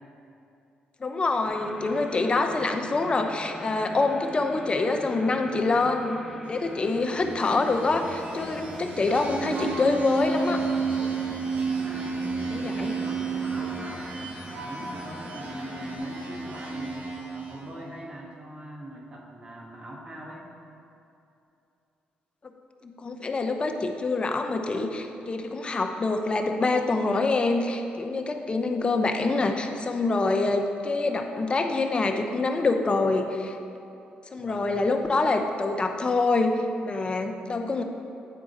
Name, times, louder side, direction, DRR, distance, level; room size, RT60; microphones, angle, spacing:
voice 1, 1.0-6.2 6.5-10.6 12.5-12.9 22.8-33.6 34.3-36.5 36.8-37.8, left 3 dB, 30° left, 5 dB, 0.7 m, -26 dB
sound 1, 1.4-16.0, equal, ahead, 0.9 m, -43 dB
voice 2, 5.2-5.7 11.7-14.1 14.5-20.5 34.4-34.8, right 1 dB, 35° right, -2 dB, 1.6 m, -42 dB
sound 2, 6.9-17.8, right 4 dB, 50° right, 1.3 m, -32 dB
9.3 x 4.8 x 4.1 m, 2.8 s
cardioid pair, 85°, 3 cm